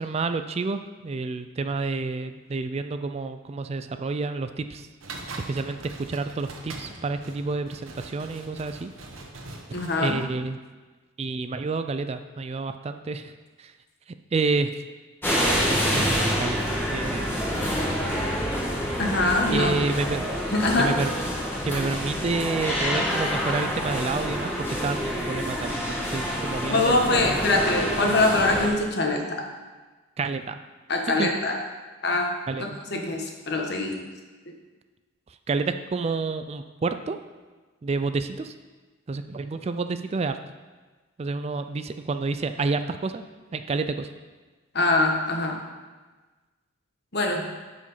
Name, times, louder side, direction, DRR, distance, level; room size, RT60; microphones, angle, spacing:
voice 1, 0.0-4.9 5.5-8.9 10.0-10.6 11.2-13.3 13.6-13.7 14.3-14.7 15.7-16.6 16.9-17.2 19.5-20.3 20.8-21.2 21.7-24.5 24.8-27.4 30.2-30.5 31.1-31.3 32.5-32.8 35.5-37.2 37.8-38.5 39.1-40.4 41.2-43.2 43.5-44.1, right 3 dB, 30° right, 9 dB, 0.3 m, -29 dB
sound 1, 5.0-10.2, right 2 dB, 85° right, 1.2 m, -42 dB
voice 2, 9.7-10.2 19.0-19.9 20.5-20.9 26.7-29.4 30.9-31.5 32.0-32.3 32.6-34.0 44.7-45.6 47.1-47.5, left 2 dB, 55° left, 1 dB, 1.4 m, -23 dB
sound 2, 15.2-28.7, equal, 10° left, 2.0 m, -27 dB
10.5 x 5.1 x 5.6 m, 1.3 s
head